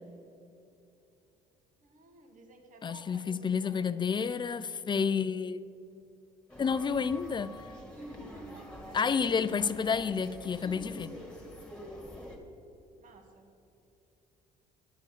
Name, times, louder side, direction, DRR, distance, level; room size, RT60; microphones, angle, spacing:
voice 1, 1.8-4.2 8.3-9.8 13.0-13.5, right 3 dB, 55° right, 1.7 m, -56 dB
voice 2, 2.8-5.6 6.6-7.5 8.9-11.1, left 6 dB, 30° left, 0.5 m, -30 dB
sound 1, 6.5-12.4, equal, 5° left, 2.0 m, -45 dB
11.0 x 7.5 x 7.4 m
cardioid pair, 90°, 16 cm